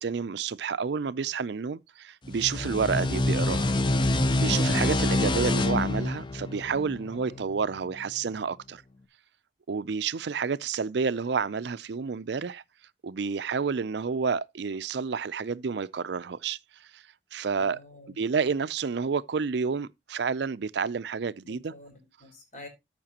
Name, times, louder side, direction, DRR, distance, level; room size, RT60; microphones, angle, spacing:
voice 1, 0.0-3.7 4.0-4.1 4.4-8.8 9.7-12.6 13.0-17.0 17.3-17.8 18.2-21.7, right 5 dB, 65° right, 0.4 m, -30 dB
sound 1, 2.3-7.6, left 2 dB, 25° left, 0.6 m, -26 dB
voice 2, 2.5-3.0 7.3-7.5 17.6-18.2 21.4-22.7, left 2 dB, 40° left, 4.2 m, -49 dB
13.5 x 5.9 x 2.8 m
head